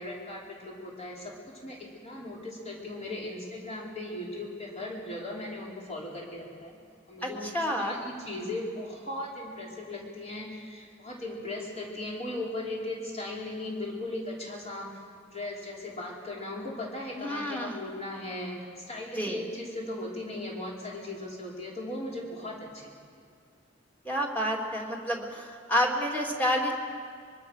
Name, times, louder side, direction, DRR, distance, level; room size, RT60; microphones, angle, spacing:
voice 1, 0.0-6.8 7.1-7.5 7.8-14.9 15.2-22.9, left 1 dB, 35° left, -3 dB, 5.3 m, -38 dB
voice 2, 7.2-8.0 17.2-17.8 19.1-19.4 24.0-26.7, equal, 10° left, 0 dB, 3.2 m, -29 dB
24.5 x 24.0 x 6.7 m, 2.1 s
head